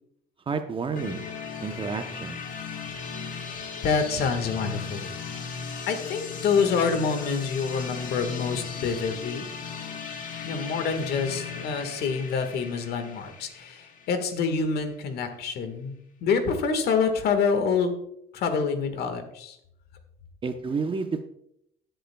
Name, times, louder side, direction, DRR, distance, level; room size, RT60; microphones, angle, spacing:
voice 1, 0.5-1.3 1.6-2.4 20.4-21.3, right 5 dB, 30° right, 7 dB, 0.8 m, -30 dB
sound 1, 1.0-14.7, left 5 dB, 50° left, 1.3 m, -37 dB
voice 2, 3.8-5.4 5.8-9.4 10.4-15.9 16.2-17.9 18.3-19.6, left 5 dB, 70° left, 7 dB, 1.6 m, -27 dB
17.0 x 7.9 x 2.3 m, 0.75 s
cardioid pair, 110°, 17 cm